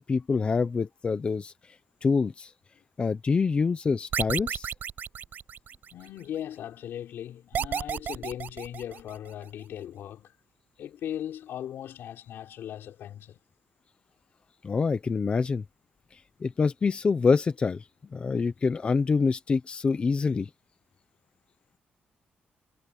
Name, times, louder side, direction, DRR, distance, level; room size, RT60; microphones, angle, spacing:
voice 1, 0.0-1.5 2.0-2.5 3.0-4.7 14.6-15.6 16.4-17.9 18.1-20.5, left 4 dB, 30° left, 0.8 m, -26 dB
sound 1, 4.1-6.1 7.5-9.3, right 8 dB, 55° right, 5.1 m, -32 dB
voice 2, 5.9-10.4 10.8-13.4, left 10 dB, 80° left, 4.3 m, -38 dB
cardioid pair, 150°, 4 cm